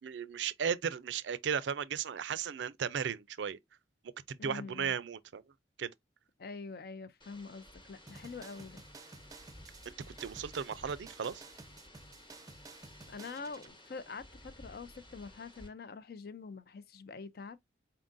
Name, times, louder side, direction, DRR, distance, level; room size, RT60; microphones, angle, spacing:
voice 1, 0.0-3.6 4.3-5.4 5.8-5.9 9.9-11.4, right 7 dB, 80° right, 0.4 m, -35 dB
voice 2, 4.4-5.0 6.4-8.8 13.1-17.6, left 4 dB, 55° left, 0.4 m, -45 dB
sound 1, 7.2-15.7, left 1 dB, 25° left, 1.1 m, -55 dB
sound 2, 8.1-13.7, right 3 dB, 20° right, 0.5 m, -53 dB
4.4 x 3.8 x 2.5 m
head